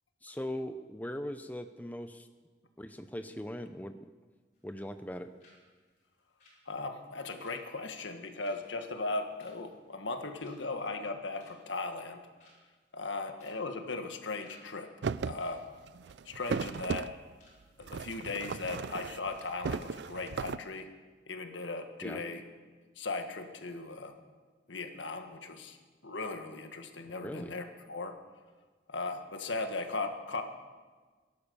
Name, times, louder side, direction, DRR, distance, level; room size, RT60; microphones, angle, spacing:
voice 1, 0.2-2.3 2.8-4.0 4.6-5.3 22.0-22.2 27.2-27.5, equal, 10° left, 8 dB, 0.5 m, -40 dB
sound 1, 4.5-5.1 5.4-5.6 5.9-10.1 10.4-10.8 11.2-11.8 12.1-12.2 12.4-12.8 13.3-13.6 13.9-14.6 14.9-15.1 15.4-16.6 17.0-17.6 17.8-18.0 18.4-18.6 19.0-19.1 19.4-19.6 19.9-20.0, left 2 dB, 45° left, 5.8 m, -62 dB
voice 2, 6.6-12.2 12.9-14.9 15.2-15.7 16.2-17.1 17.8-20.9 21.3-22.4 22.9-24.1 24.7-25.8 26.0-28.1 28.9-30.4, left 3 dB, 90° left, 6 dB, 1.6 m, -37 dB
sound 2, 15.0-15.4 15.8-17.1 17.8-19.4 19.6-20.6, right 5 dB, 70° right, 0.4 m, -36 dB
18.0 x 11.5 x 6.9 m, 1.4 s
head